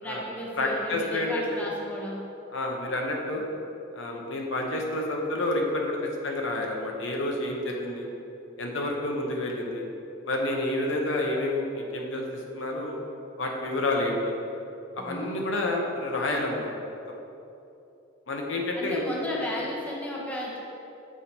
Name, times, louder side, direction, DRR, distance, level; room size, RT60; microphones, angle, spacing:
voice 1, 0.0-2.2 15.0-15.4 18.7-20.6, left 1 dB, 10° left, -4 dB, 0.7 m, -34 dB
voice 2, 0.6-1.7 2.5-3.4 3.9-6.0 6.2-8.1 8.6-9.8 10.2-13.0 13.4-14.3 14.9-16.7 18.3-19.4, left 1 dB, 70° left, 0 dB, 0.8 m, -29 dB
7.1 x 4.3 x 4.2 m, 2.9 s
head